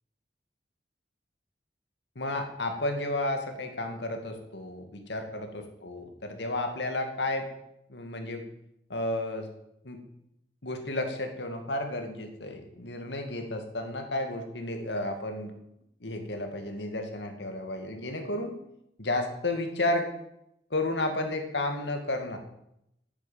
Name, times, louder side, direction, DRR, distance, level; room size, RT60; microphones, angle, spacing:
voice 1, 2.2-7.5 7.9-8.4 8.9-9.5 9.8-10.0 10.6-15.5 16.0-18.5 19.0-20.1 20.7-22.4, left 2 dB, 80° left, 5 dB, 2.2 m, -32 dB
10.5 x 9.8 x 7.5 m, 0.81 s
head